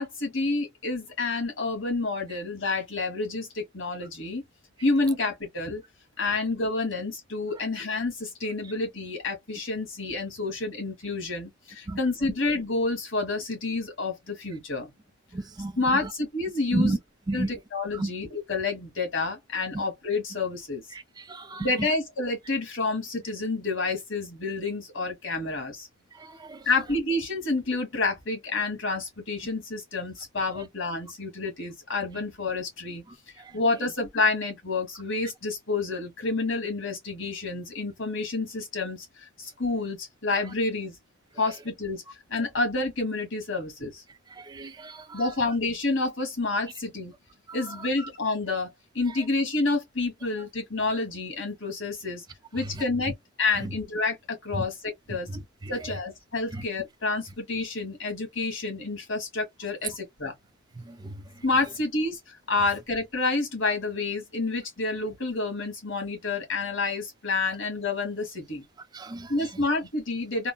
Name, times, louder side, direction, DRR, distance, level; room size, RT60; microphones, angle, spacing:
voice 1, 0.0-4.4 4.8-5.8 6.2-14.9 15.8-17.0 17.3-20.8 21.6-25.9 26.7-33.0 33.5-41.0 41.4-42.0 42.3-44.0 45.1-47.1 47.5-52.2 52.5-55.3 55.7-60.3 61.4-68.6 69.3-70.5, left 3 dB, 70° left, 1.8 m, -29 dB
voice 2, 15.3-15.7 16.7-17.0 17.3-17.5 18.0-18.1 21.3-21.7 26.5-26.6 44.5-45.0 61.0-61.1 68.9-69.3, right 2 dB, 20° right, 0.4 m, -30 dB
3.7 x 2.1 x 2.2 m
head